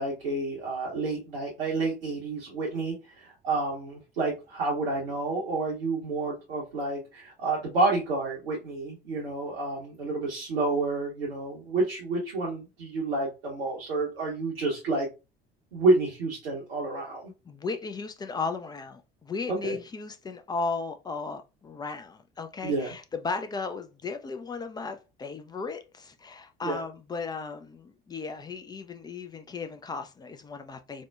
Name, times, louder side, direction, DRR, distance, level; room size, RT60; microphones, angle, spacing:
voice 1, 0.0-15.1 15.7-17.3 19.5-19.8 22.6-22.9 26.6-26.8, right 3 dB, 75° right, 0.8 m, -29 dB
voice 2, 17.5-31.0, left 4 dB, 15° left, 0.3 m, -35 dB
4.2 x 2.1 x 2.2 m
figure-of-eight pair, 60°, 29 cm